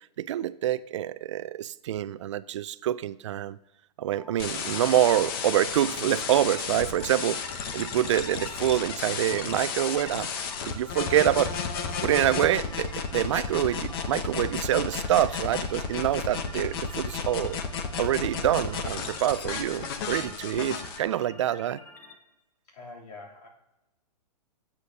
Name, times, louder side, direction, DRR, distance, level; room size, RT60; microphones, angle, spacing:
voice 1, 0.2-3.6 4.0-7.4 7.7-10.3 10.7-11.5 12.0-17.6 18.0-21.8, right 12 dB, 45° right, 0.4 m, -26 dB
sound 1, 4.1-22.1, left 1 dB, 10° left, 0.9 m, -49 dB
sound 2, 4.4-21.0, left 6 dB, 35° left, 0.9 m, -33 dB
voice 2, 22.6-23.5, left 3 dB, 75° left, 3.2 m, -45 dB
16.0 x 8.5 x 2.8 m
hypercardioid pair, 160°, 21 cm